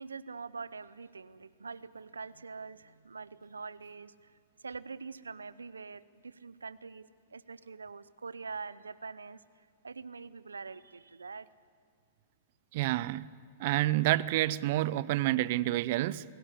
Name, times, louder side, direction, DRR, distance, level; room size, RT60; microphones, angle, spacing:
voice 1, 0.0-4.3 4.6-9.4 9.8-11.5, right 4 dB, 90° right, 0.7 m, -44 dB
voice 2, 12.7-13.3 13.6-16.2, right 16 dB, 55° right, 0.7 m, -28 dB
28.5 x 18.0 x 8.4 m
hypercardioid pair, 110°, 0 cm